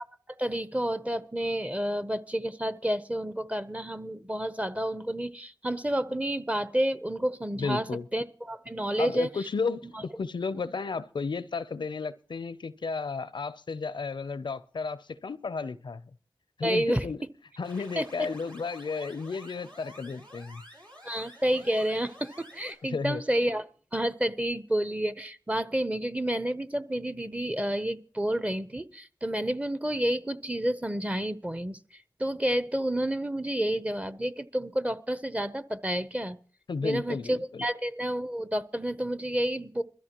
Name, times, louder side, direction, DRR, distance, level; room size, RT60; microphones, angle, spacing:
voice 1, 0.4-7.9 8.1-9.3 9.8-10.0 16.6-17.1 18.0-18.1 21.0-23.7 23.9-36.4 36.8-39.8, right 1 dB, 15° right, 0.7 m, -30 dB
voice 2, 7.6-8.1 9.0-9.9 10.2-16.0 16.6-17.2 17.6-20.6 22.9-23.2 36.7-37.7, left 4 dB, 80° left, 0.5 m, -33 dB
sound 1, 17.6-22.7, equal, 80° right, 4.8 m, -50 dB
21.5 x 13.5 x 3.0 m
wide cardioid pair, 50°, 8 cm